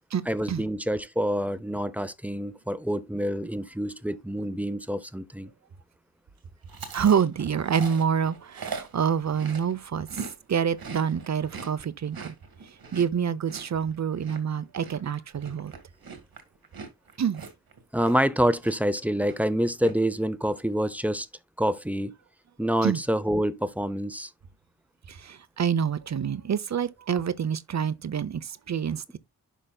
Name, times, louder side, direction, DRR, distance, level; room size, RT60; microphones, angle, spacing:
voice 1, 0.3-5.5 17.9-21.3 21.6-22.1 22.6-24.3, equal, 5° right, 0.6 m, -27 dB
Chewing mastication, 6.7-10.3 10.6-18.3 18.6-19.0 19.2-19.9, right 5 dB, 85° right, 2.0 m, -41 dB
voice 2, 6.9-12.3 12.9-15.7 17.2-17.4 22.8-23.0 25.1-29.2, right 7 dB, 50° right, 0.7 m, -27 dB
11.0 x 5.1 x 2.3 m
wide cardioid pair, 100°, 35 cm